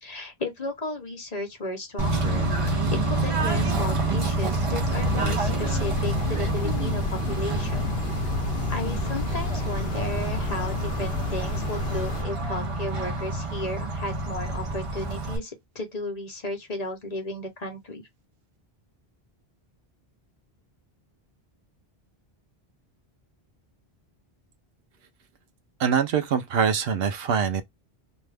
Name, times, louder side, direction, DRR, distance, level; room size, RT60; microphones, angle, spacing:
voice 1, 0.0-8.0 8.7-18.0, left 2 dB, 45° left, 0.8 m, -34 dB
Bird / Train, 2.0-15.4, right 2 dB, 35° right, 0.8 m, -27 dB
sound 1, 4.9-12.2, left 5 dB, 70° left, 0.8 m, -33 dB
voice 2, 25.8-27.6, right 7 dB, 70° right, 0.8 m, -24 dB
2.6 x 2.3 x 3.3 m
omnidirectional pair, 1.0 m